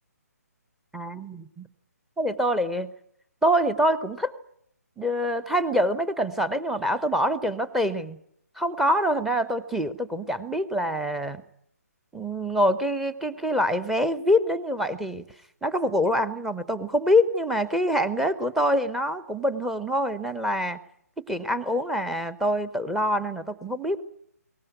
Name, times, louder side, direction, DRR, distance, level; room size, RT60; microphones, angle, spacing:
voice 1, 0.9-1.7 2.2-2.9 3.4-4.3 5.0-8.2 8.6-11.4 12.1-15.2 15.6-20.8 21.3-24.0, equal, 5° right, 13 dB, 0.9 m, -25 dB
22.0 x 19.0 x 9.4 m, 0.72 s
figure-of-eight pair, 140°, 9 cm